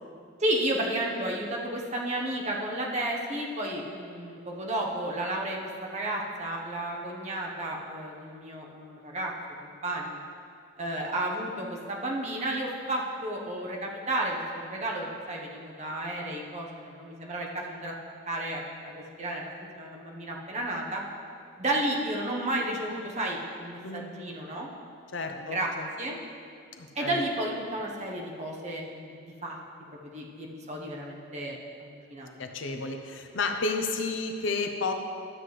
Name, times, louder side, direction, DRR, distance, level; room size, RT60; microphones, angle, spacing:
voice 1, 0.4-9.3 9.6-10.2 10.8-14.4 14.7-17.9 18.3-21.0 21.6-24.7 25.4-25.7 26.0-26.2 26.9-29.6 29.9-32.5, right 1 dB, 35° right, -2 dB, 1.0 m, -32 dB
voice 2, 25.1-25.9 26.8-27.2 32.4-34.9, left 3 dB, 65° left, 5 dB, 0.7 m, -31 dB
12.0 x 7.6 x 3.2 m, 2.3 s
head